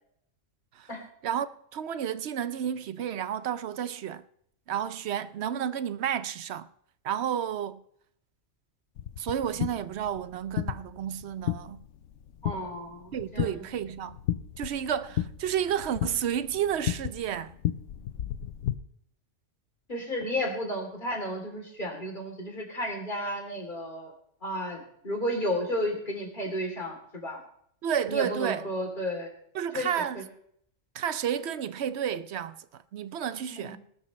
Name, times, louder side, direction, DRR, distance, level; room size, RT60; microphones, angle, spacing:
voice 1, 1.2-4.2 4.7-6.7 7.0-7.8 9.2-11.8 13.1-14.2 14.6-17.5 27.8-28.6 29.5-30.2 30.9-33.8, right 9 dB, 60° right, 0.9 m, -31 dB
sound 1, 9.0-18.8, left 12 dB, 70° left, 1.0 m, -34 dB
voice 2, 12.4-13.6 19.9-24.1 24.4-27.4 28.1-29.3 29.7-29.9 30.2-30.3 33.5-33.7, equal, 40° left, 3.4 m, -33 dB
20.0 x 12.5 x 3.2 m
omnidirectional pair, 1.3 m